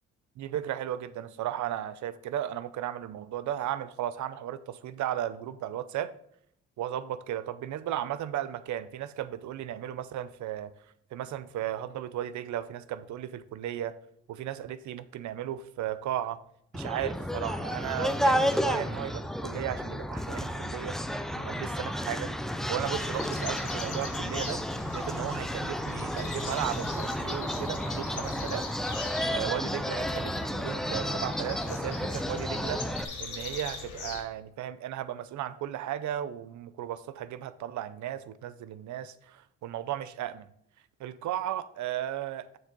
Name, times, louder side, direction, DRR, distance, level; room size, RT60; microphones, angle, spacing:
voice 1, 0.4-6.1 6.8-10.7 11.1-14.0 14.3-16.4 16.7-21.0 21.3-22.3 22.7-24.6 24.9-28.7 29.3-40.5 41.0-42.6, right 11 dB, 70° right, 0.6 m, -35 dB
sound 1, 16.7-33.0, equal, ahead, 0.4 m, -32 dB
sound 2, 22.8-34.2, left 5 dB, 85° left, 2.1 m, -42 dB
7.1 x 6.4 x 3.9 m
cardioid pair, 90°, 30 cm